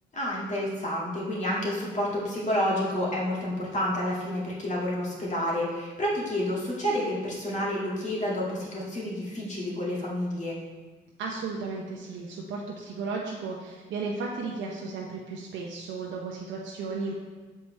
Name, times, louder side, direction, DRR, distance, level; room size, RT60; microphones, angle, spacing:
voice 1, 0.1-10.6, left 1 dB, 35° left, -5 dB, 2.0 m, -29 dB
voice 2, 11.2-17.1, right 4 dB, 75° right, -2 dB, 0.8 m, -34 dB
6.6 x 4.7 x 3.2 m, 1.3 s
cardioid pair, 90°, 20 cm